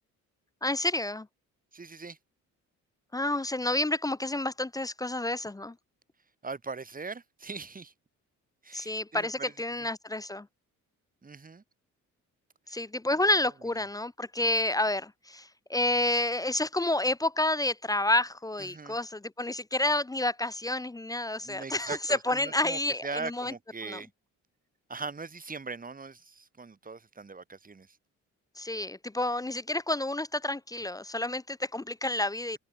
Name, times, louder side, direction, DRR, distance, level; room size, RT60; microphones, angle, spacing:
voice 1, 0.6-1.3 3.1-5.7 8.7-10.5 12.7-23.5 23.9-24.0 28.6-32.6, left 2 dB, 10° left, 0.7 m, -29 dB
voice 2, 1.7-2.2 6.4-7.9 8.6-9.5 9.8-9.9 11.2-11.6 12.7-12.8 18.6-19.0 21.4-24.1 24.9-28.0, right 4 dB, 30° right, 4.6 m, -40 dB
cardioid pair, 90°, 30 cm